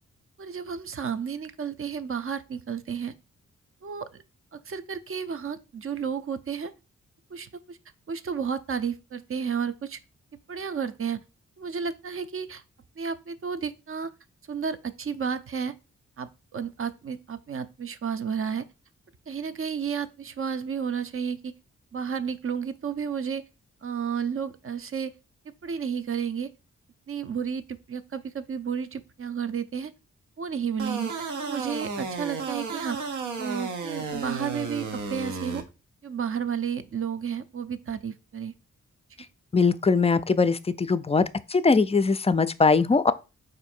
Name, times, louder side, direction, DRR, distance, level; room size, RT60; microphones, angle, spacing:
voice 1, 0.4-3.1 3.8-4.2 4.5-6.7 7.3-7.8 8.1-10.0 10.5-11.2 11.6-12.6 13.0-14.1 14.5-15.7 16.2-18.7 19.3-21.5 21.9-23.4 23.8-25.1 25.6-26.5 27.1-29.9 30.4-33.0 33.4-35.6 36.0-38.5, right 7 dB, 45° right, 0.6 m, -32 dB
sound 1, 30.8-35.6, right 4 dB, 85° right, 0.8 m, -33 dB
voice 2, 39.5-41.2 41.5-43.1, left 4 dB, 20° left, 0.4 m, -21 dB
4.4 x 2.6 x 4.3 m
supercardioid pair, 45°, 30 cm